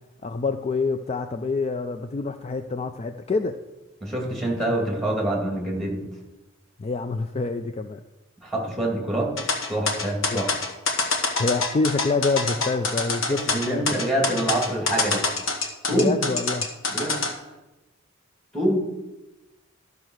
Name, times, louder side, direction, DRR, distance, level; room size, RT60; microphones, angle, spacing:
voice 1, 0.2-3.6 6.8-8.0 10.3-10.4 11.4-14.0 15.9-16.7, left 3 dB, 30° left, 8 dB, 0.4 m, -26 dB
voice 2, 4.0-6.0 8.4-9.3 9.7-10.5 13.3-15.2 15.9-16.2 16.9-17.4 18.5-18.8, right 1 dB, ahead, -1 dB, 2.3 m, -25 dB
sound 1, 9.4-17.3, left 3 dB, 90° left, 1.5 m, -25 dB
12.5 x 4.6 x 6.4 m, 1.0 s
head